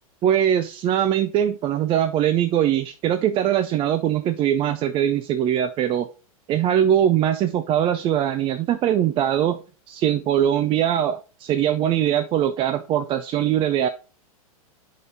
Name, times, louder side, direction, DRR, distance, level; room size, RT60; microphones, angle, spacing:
voice 1, 0.2-6.1 6.5-9.6 9.9-13.9, right 10 dB, 30° right, 10 dB, 0.5 m, -21 dB
5.2 x 4.2 x 5.3 m, 0.34 s
hypercardioid pair, 115°, 19 cm